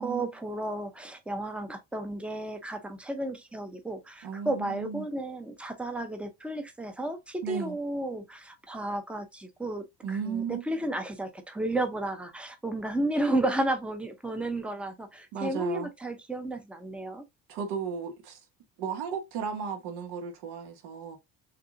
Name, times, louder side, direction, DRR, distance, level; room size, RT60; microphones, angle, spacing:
voice 1, 0.0-17.2, right 1 dB, 5° right, 0.6 m, -33 dB
voice 2, 4.2-5.1 7.4-7.8 10.0-10.8 15.3-15.9 17.5-18.4 18.8-21.2, right 6 dB, 85° right, 1.6 m, -34 dB
6.6 x 2.6 x 2.5 m
cardioid pair, 160°, 40 cm